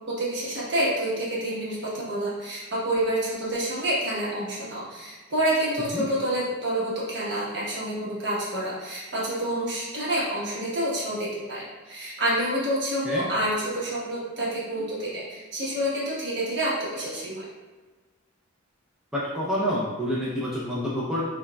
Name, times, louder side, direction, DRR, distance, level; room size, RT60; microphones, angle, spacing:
voice 1, 0.2-17.5, right 1 dB, 55° right, -6 dB, 1.1 m, -28 dB
voice 2, 19.1-21.2, equal, 5° right, -8 dB, 0.4 m, -28 dB
5.5 x 2.3 x 2.2 m, 1.3 s
head